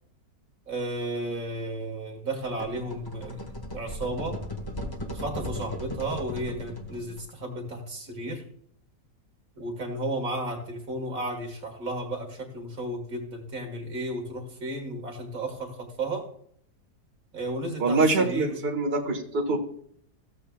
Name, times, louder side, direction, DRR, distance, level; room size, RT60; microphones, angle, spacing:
voice 1, 0.7-3.5 3.7-4.4 5.1-8.4 9.6-16.2 17.3-18.6, right 1 dB, 60° right, 3 dB, 2.0 m, -33 dB
sound 1, 2.4-7.3, left 1 dB, 15° left, 1.0 m, -37 dB
voice 2, 17.8-19.6, right 3 dB, 40° right, 0 dB, 1.7 m, -24 dB
14.5 x 8.1 x 2.3 m, 0.63 s
omnidirectional pair, 1.7 m